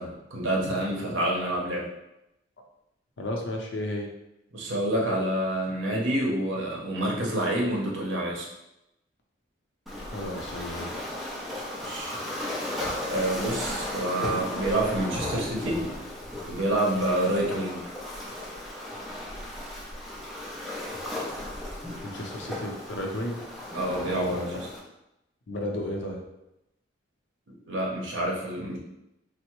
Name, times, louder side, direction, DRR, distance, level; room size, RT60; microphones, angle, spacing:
voice 1, 0.0-1.9 4.5-8.5 11.8-12.1 13.1-15.8 16.5-17.8 23.7-24.3 27.7-28.8, right 1 dB, 70° right, -2 dB, 0.8 m, -28 dB
voice 2, 3.2-4.1 10.1-10.9 22.0-23.4 24.1-24.6 25.5-26.2, left 1 dB, 60° left, 1 dB, 0.6 m, -33 dB
Waves surf, 9.9-24.8, left 1 dB, ahead, 0.4 m, -35 dB
3.4 x 2.0 x 2.9 m, 0.87 s
head